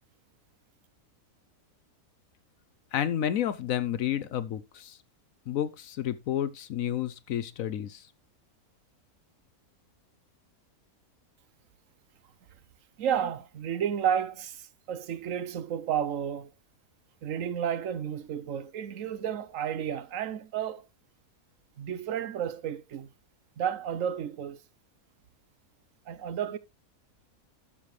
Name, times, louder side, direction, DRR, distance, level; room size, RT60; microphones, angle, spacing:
voice 1, 2.9-5.0 5.5-8.0, left 10 dB, 65° left, 1.0 m, -30 dB
voice 2, 13.0-16.5 17.2-20.9 21.8-23.1 23.6-24.6 26.1-26.6, right 9 dB, 65° right, 1.0 m, -32 dB
12.5 x 6.8 x 3.2 m
omnidirectional pair, 1.6 m